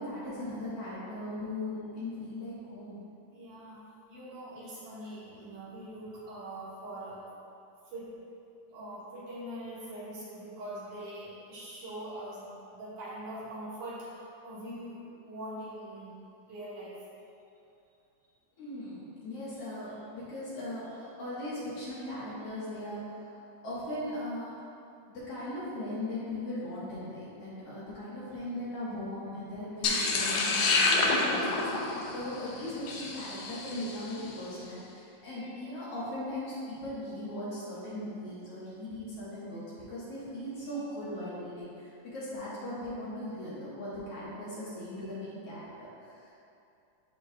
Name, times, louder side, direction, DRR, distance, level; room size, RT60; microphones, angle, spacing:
voice 1, 0.0-2.9 18.6-24.5 25.1-46.4, left 1 dB, 55° left, -9 dB, 2.1 m, -39 dB
voice 2, 3.3-3.8 4.1-7.2 7.9-8.1 8.7-15.0 15.3-16.2 16.5-16.9, right 1 dB, 75° right, -9 dB, 3.0 m, -42 dB
sound 1, 29.8-34.1, left 3 dB, 75° left, 1.5 m, -28 dB
12.0 x 4.2 x 2.3 m, 2.6 s
omnidirectional pair, 3.6 m